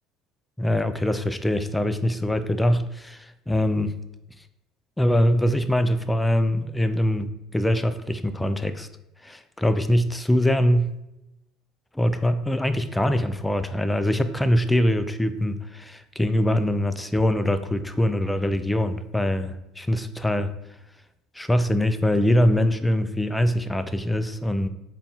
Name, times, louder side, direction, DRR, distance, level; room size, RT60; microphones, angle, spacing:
voice 1, 0.6-3.9 5.0-8.9 9.2-10.9 11.9-20.5 21.3-24.7, left 1 dB, 10° left, 10 dB, 0.3 m, -23 dB
4.1 x 2.3 x 3.9 m, 0.91 s
supercardioid pair, 95°, 0 cm